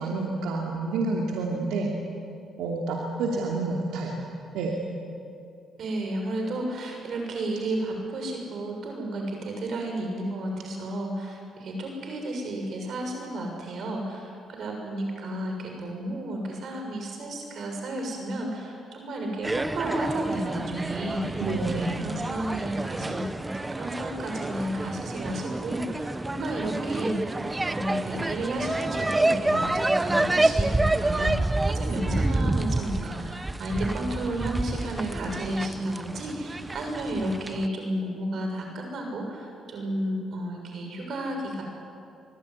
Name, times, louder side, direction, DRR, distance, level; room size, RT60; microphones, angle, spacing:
voice 1, 0.0-2.0 2.6-4.2 4.5-4.7 21.4-22.0, right 3 dB, 90° right, -1 dB, 2.8 m, -28 dB
voice 2, 5.8-21.4 21.7-23.3 23.5-41.6, right 1 dB, 60° right, 2 dB, 6.7 m, -32 dB
sound 1, 19.4-37.7, right 2 dB, 15° right, 0.9 m, -28 dB
25.0 x 20.5 x 9.8 m, 2.5 s
cardioid pair, 90°, 0 cm